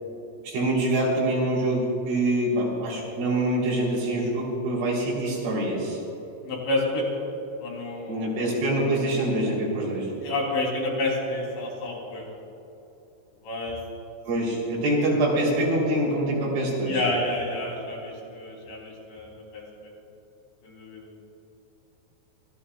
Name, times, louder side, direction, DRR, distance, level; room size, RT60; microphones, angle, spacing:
voice 1, 0.4-6.0 8.1-10.1 14.3-17.0, right 1 dB, 85° right, -4 dB, 5.9 m, -25 dB
voice 2, 6.4-7.0 7.6-8.2 10.2-12.2 13.4-13.8 16.9-19.9 20.6-21.1, left 2 dB, 70° left, -2 dB, 5.5 m, -29 dB
26.0 x 16.0 x 2.4 m, 3.0 s
omnidirectional pair, 5.3 m